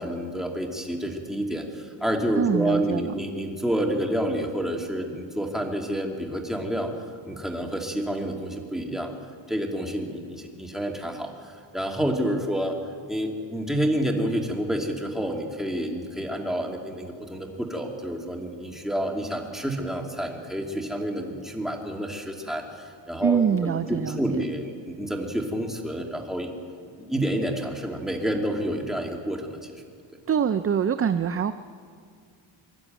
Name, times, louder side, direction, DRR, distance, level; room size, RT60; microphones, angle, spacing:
voice 1, 0.0-6.9 7.2-9.1 9.5-12.8 13.1-26.5 27.1-29.8, right 1 dB, ahead, 1 dB, 2.7 m, -29 dB
voice 2, 2.4-3.1 23.2-24.4 30.3-31.5, right 7 dB, 30° right, 11 dB, 0.5 m, -24 dB
25.0 x 12.0 x 9.2 m, 2.1 s
cardioid pair, 110°, 50 cm